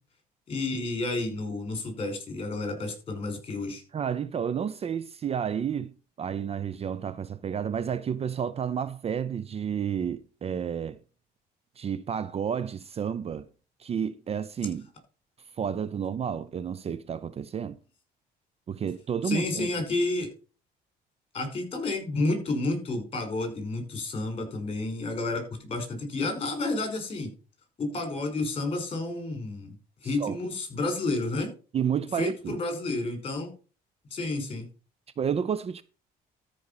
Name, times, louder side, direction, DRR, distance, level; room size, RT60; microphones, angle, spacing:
voice 1, 0.5-3.8 19.2-20.3 21.3-27.3 27.8-29.8 30.0-31.5 32.2-33.5 34.1-34.7, left 2 dB, 35° left, 5.3 m, -30 dB
voice 2, 3.9-11.0 11.8-13.5 13.8-14.9 15.6-17.8 18.7-19.7 30.2-30.4 31.7-32.6 35.2-35.8, right 7 dB, 35° right, 0.6 m, -31 dB
13.0 x 5.3 x 5.7 m
cardioid pair, 110°, 17 cm